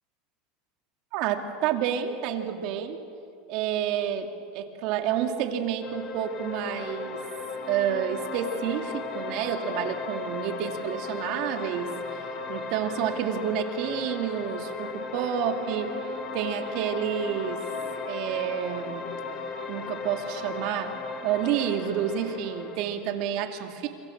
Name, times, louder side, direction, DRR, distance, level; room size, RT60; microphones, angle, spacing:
voice 1, 1.1-3.0 3.5-4.3 4.5-7.2 7.7-11.9 12.5-15.9 16.3-17.6 18.1-19.1 19.7-20.9 21.2-23.9, right 9 dB, 60° right, 5 dB, 2.5 m, -29 dB
sound 1, 5.8-22.8, left 4 dB, 40° left, 2.5 m, -36 dB
28.0 x 24.0 x 7.3 m, 2.5 s
supercardioid pair, 130°, 0 cm